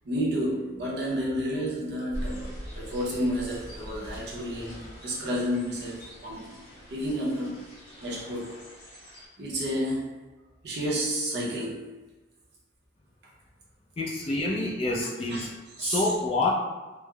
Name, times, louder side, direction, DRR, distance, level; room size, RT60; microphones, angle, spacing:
voice 1, 0.0-6.5 6.9-7.6 8.0-8.6 9.4-10.1 10.6-11.9 14.5-14.6 15.3-15.4 15.8-16.1, equal, 60° right, -4 dB, 0.6 m, -30 dB
sound 1, 2.1-9.3, equal, 60° left, 1.3 m, -42 dB
voice 2, 14.0-16.5, left 2 dB, 30° left, -3 dB, 0.4 m, -28 dB
3.2 x 2.0 x 2.2 m, 1.2 s
head